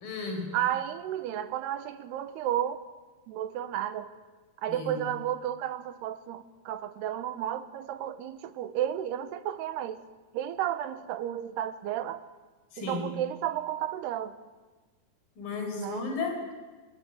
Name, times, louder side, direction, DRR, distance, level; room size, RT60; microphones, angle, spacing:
voice 1, 0.0-0.5 4.7-5.0 12.7-13.1 15.4-16.4, left 3 dB, 60° left, 3 dB, 6.6 m, -34 dB
voice 2, 0.5-2.8 3.3-4.1 4.6-10.0 10.3-12.2 12.8-14.3 15.8-16.1, right 11 dB, 90° right, 12 dB, 3.2 m, -32 dB
27.5 x 19.0 x 9.4 m, 1.3 s
omnidirectional pair, 4.6 m